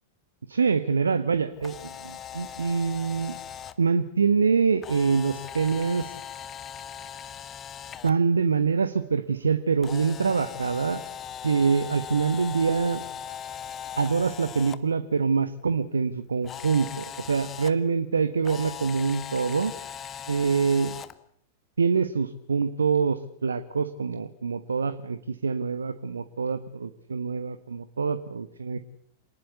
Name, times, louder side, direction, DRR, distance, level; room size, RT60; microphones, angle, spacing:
voice 1, 0.5-3.4 3.8-6.1 8.0-11.0 11.4-13.0 14.0-19.7 20.3-21.0 21.8-28.8, right 5 dB, 75° right, 13 dB, 1.2 m, -25 dB
Camera, 1.5-3.7 4.8-8.1 9.8-14.8 16.4-17.7 18.4-21.1, left 9 dB, 25° left, 1.6 m, -39 dB
27.5 x 19.5 x 8.3 m, 0.67 s
figure-of-eight pair, 95°, 0 cm